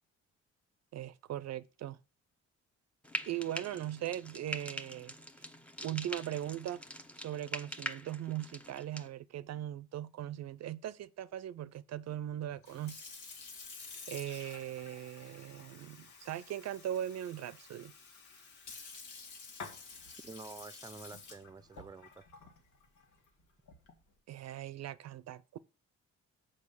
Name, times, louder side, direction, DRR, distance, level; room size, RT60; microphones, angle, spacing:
voice 1, 0.9-2.0 3.3-5.1 5.8-6.8 7.1-13.0 14.1-17.9 24.3-25.6, right 12 dB, 60° right, 0.5 m, -39 dB
Frying (food), 3.0-9.1, equal, 5° left, 0.9 m, -44 dB
Sink (filling or washing) / Fill (with liquid), 12.5-24.1, left 4 dB, 70° left, 2.3 m, -51 dB
voice 2, 20.2-22.2, right 4 dB, 15° right, 0.6 m, -49 dB
6.3 x 5.2 x 7.0 m
cardioid pair, 90°, 30 cm